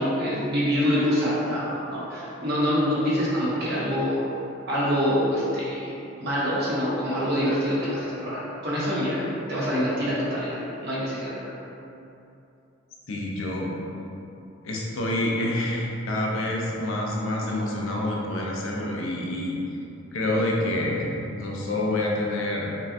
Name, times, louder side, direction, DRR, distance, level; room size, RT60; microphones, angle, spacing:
voice 1, 0.0-4.2 4.7-11.4, equal, 50° right, -8 dB, 1.0 m, -25 dB
voice 2, 13.1-13.7 14.6-19.6 20.1-22.7, left 1 dB, 70° left, -2 dB, 0.6 m, -27 dB
5.4 x 2.4 x 2.7 m, 2.8 s
head